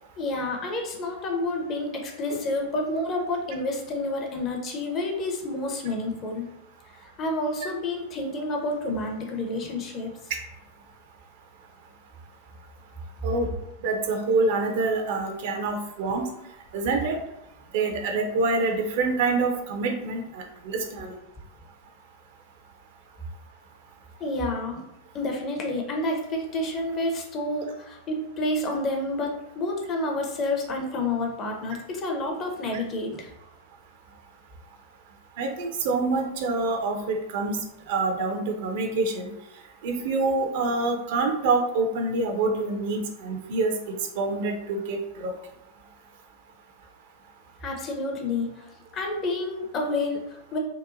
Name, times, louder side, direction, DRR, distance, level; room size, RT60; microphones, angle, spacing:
voice 1, 0.2-6.4 6.9-10.1 24.2-24.8 25.1-33.3 47.6-48.6 48.9-50.6, left 2 dB, 30° left, 2 dB, 0.6 m, -29 dB
voice 2, 13.8-16.3 16.7-17.2 17.7-21.1 35.4-37.6 37.9-39.3 39.8-43.7 44.2-45.3, right 3 dB, 50° right, 4 dB, 0.4 m, -26 dB
2.8 x 2.2 x 2.5 m, 0.84 s
figure-of-eight pair, 90°, 0 cm